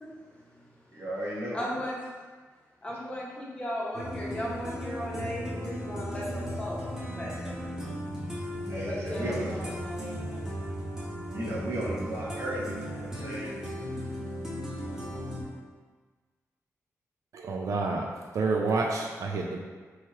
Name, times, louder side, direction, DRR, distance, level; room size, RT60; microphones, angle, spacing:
voice 1, 0.0-1.0 1.5-2.1 2.8-6.8 7.1-7.9 8.8-10.6 11.0-11.3 13.1-13.4 13.9-14.1, left 1 dB, 20° left, -5 dB, 0.8 m, -37 dB
voice 2, 0.9-1.7 8.7-9.6 11.3-13.6, right 1 dB, 50° right, -5 dB, 1.0 m, -34 dB
sound 1, 3.9-15.4, equal, 10° right, 0.8 m, -36 dB
voice 3, 17.3-18.0 18.3-19.6, right 3 dB, 70° right, 0 dB, 0.4 m, -28 dB
3.1 x 3.1 x 4.6 m, 1.4 s
wide cardioid pair, 175°, 6 cm